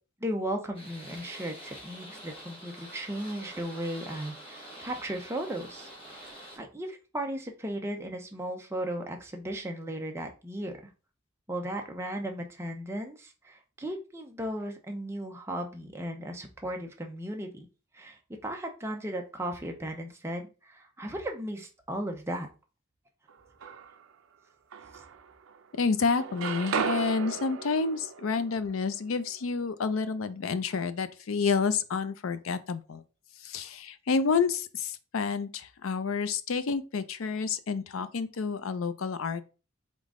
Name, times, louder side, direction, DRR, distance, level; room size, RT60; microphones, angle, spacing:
voice 1, 0.2-5.9 6.2-10.7 11.5-17.7 17.9-22.5, right 1 dB, 15° right, 0.7 m, -36 dB
sound 1, 0.7-6.6, equal, 25° left, 1.6 m, -46 dB
sound 2, 23.3-24.1 24.7-25.7 26.0-29.9, right 6 dB, 85° right, 0.5 m, -36 dB
voice 2, 25.8-33.0 33.4-39.5, left 5 dB, 85° left, 0.5 m, -29 dB
3.8 x 3.7 x 3.6 m
head